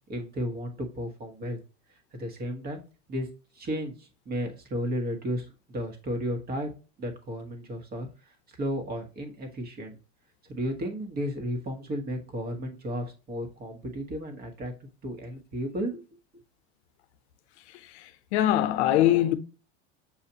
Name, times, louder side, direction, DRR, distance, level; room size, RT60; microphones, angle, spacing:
voice 1, 0.1-1.6 2.1-2.8 3.1-3.3 3.5-6.7 7.0-10.0 10.5-16.0, equal, 30° right, 1.2 m, -33 dB
voice 2, 18.3-19.3, left 12 dB, 85° left, 0.7 m, -21 dB
7.2 x 2.5 x 2.8 m
supercardioid pair, 130°, 33 cm